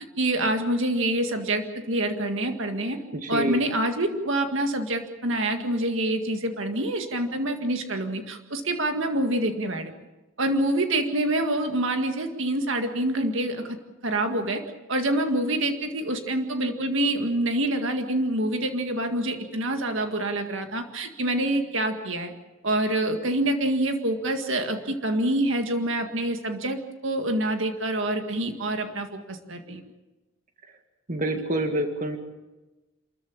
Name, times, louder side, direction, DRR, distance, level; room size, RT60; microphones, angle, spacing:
voice 1, 0.2-3.0 3.3-9.9 10.4-13.8 14.0-14.6 14.9-22.3 22.6-29.8, right 1 dB, 60° right, 5 dB, 1.9 m, -26 dB
voice 2, 3.1-3.6 31.1-32.2, right 1 dB, 35° right, 5 dB, 2.0 m, -27 dB
28.0 x 14.0 x 8.8 m, 1.1 s
head